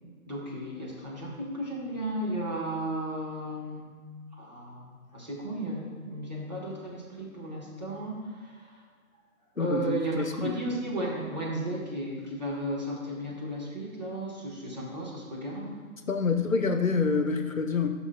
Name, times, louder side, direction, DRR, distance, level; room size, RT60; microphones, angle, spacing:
voice 1, 0.0-3.9 4.3-8.8 9.5-15.8, right 1 dB, 30° right, -5 dB, 1.5 m, -34 dB
voice 2, 9.6-10.6 16.1-17.9, left 4 dB, 65° left, 6 dB, 0.9 m, -27 dB
12.5 x 6.1 x 2.3 m, 1.5 s
figure-of-eight pair, 160°, 43 cm